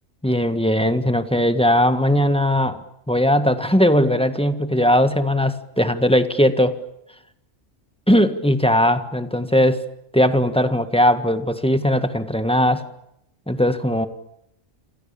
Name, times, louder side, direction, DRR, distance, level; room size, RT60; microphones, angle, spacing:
voice 1, 0.2-2.8 3.1-6.8 8.1-9.8 10.1-12.8 13.5-14.1, equal, 5° left, 9 dB, 1.7 m, -19 dB
28.0 x 28.0 x 7.2 m, 0.77 s
omnidirectional pair, 1.3 m